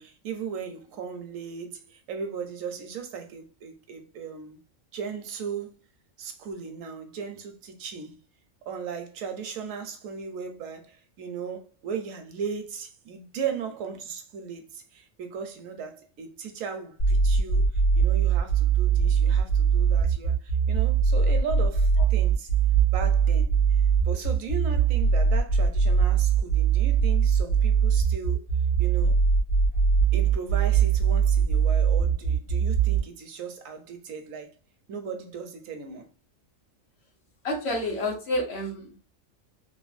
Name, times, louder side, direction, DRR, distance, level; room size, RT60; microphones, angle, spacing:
voice 1, 0.0-4.6 4.9-5.8 6.2-8.2 8.7-22.5 22.9-28.5 28.8-29.2 30.1-34.5 34.9-36.1, right 6 dB, 75° right, 1.0 m, -37 dB
sound 1, 17.0-33.0, right 6 dB, 90° left, 1.4 m, -21 dB
voice 2, 37.4-39.0, left 1 dB, 60° left, 0.9 m, -29 dB
3.2 x 2.2 x 2.4 m
omnidirectional pair, 1.4 m